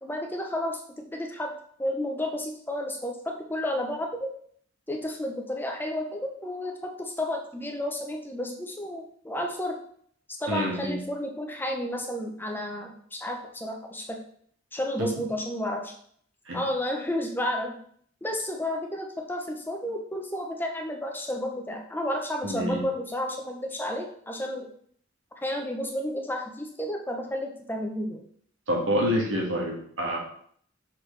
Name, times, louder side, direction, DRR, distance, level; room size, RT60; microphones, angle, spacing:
voice 1, 0.0-0.8 1.1-1.5 1.8-4.3 4.9-9.8 10.3-14.2 14.7-15.9 16.5-17.8 18.2-24.7 25.4-28.2, left 1 dB, 10° left, 2 dB, 0.8 m, -31 dB
voice 2, 10.5-11.0 15.0-15.1 16.5-16.6 22.4-22.8 28.7-30.2, equal, 80° right, -2 dB, 1.7 m, -27 dB
6.1 x 4.7 x 3.3 m, 0.62 s
head